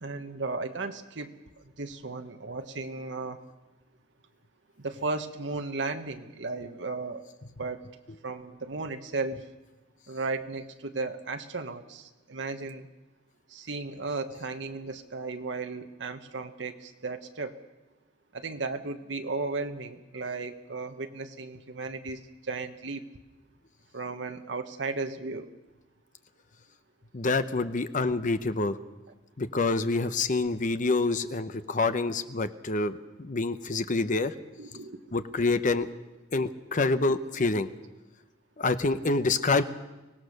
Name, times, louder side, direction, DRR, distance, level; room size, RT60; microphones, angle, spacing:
voice 1, 0.0-1.3 1.8-3.4 4.8-7.2 7.6-7.8 8.2-9.4 10.1-12.9 13.5-17.6 18.3-23.0 23.9-25.5 34.6-35.0, right 3 dB, 70° right, 6 dB, 1.2 m, -35 dB
voice 2, 27.1-28.8 29.4-32.9 33.2-34.3 35.1-35.9 36.3-37.7 38.6-39.6, left 3 dB, 45° left, 11 dB, 0.8 m, -27 dB
24.0 x 18.0 x 6.6 m, 1.1 s
head